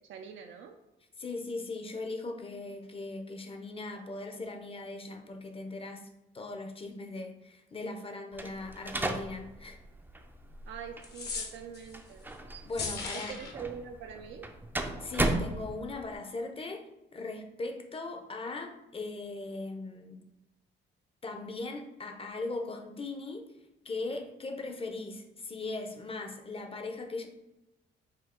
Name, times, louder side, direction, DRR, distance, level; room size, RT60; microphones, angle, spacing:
voice 1, 0.1-0.8 10.7-12.2 13.1-14.5, right 7 dB, 75° right, 4 dB, 0.4 m, -44 dB
voice 2, 1.2-6.1 6.3-9.8 12.6-13.5 15.0-20.2 21.2-23.5 23.8-27.3, left 3 dB, 30° left, 5 dB, 0.6 m, -39 dB
sound 1, 8.3-16.1, right 2 dB, 10° right, 0.4 m, -36 dB
sound 2, 11.0-12.0 12.7-13.5, left 4 dB, 55° left, 1.0 m, -37 dB
4.4 x 2.3 x 3.7 m, 0.93 s
cardioid pair, 90°, 20 cm